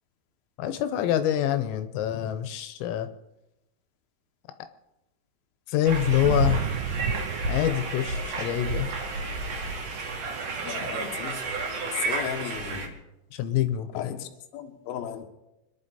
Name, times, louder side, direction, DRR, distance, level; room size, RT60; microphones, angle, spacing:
voice 1, 0.6-3.1 5.7-6.7 7.5-8.9 13.3-14.1, left 11 dB, 80° left, 10 dB, 3.4 m, -26 dB
sound 1, 5.8-12.9, right 2 dB, 50° right, 3.0 m, -30 dB
Thunder / Rain, 6.2-11.2, right 14 dB, 80° right, 2.7 m, -37 dB
voice 2, 10.6-11.4 11.9-12.9 13.9-15.3, left 9 dB, 65° left, 3 dB, 2.5 m, -35 dB
26.0 x 11.0 x 4.2 m, 0.92 s
omnidirectional pair, 6.0 m